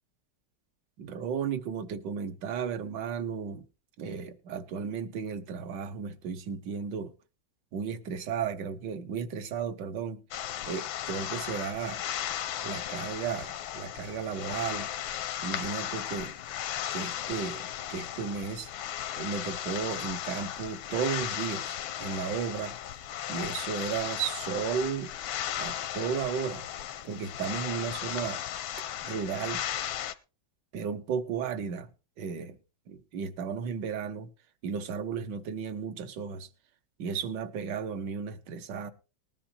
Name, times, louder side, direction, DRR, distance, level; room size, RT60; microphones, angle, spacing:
voice 1, 1.0-3.6 4.0-7.1 7.7-10.2 10.7-12.0 12.6-14.9 15.4-16.3 16.9-18.7 19.2-25.1 25.6-26.7 27.0-28.4 29.0-29.6 30.7-31.9 32.2-32.6 32.9-34.3 34.6-36.5 37.0-38.9, right 6 dB, 70° right, 1.5 m, -34 dB
sound 1, 10.3-30.1, left 11 dB, 80° left, 1.5 m, -36 dB
19.5 x 10.0 x 2.7 m
omnidirectional pair, 2.2 m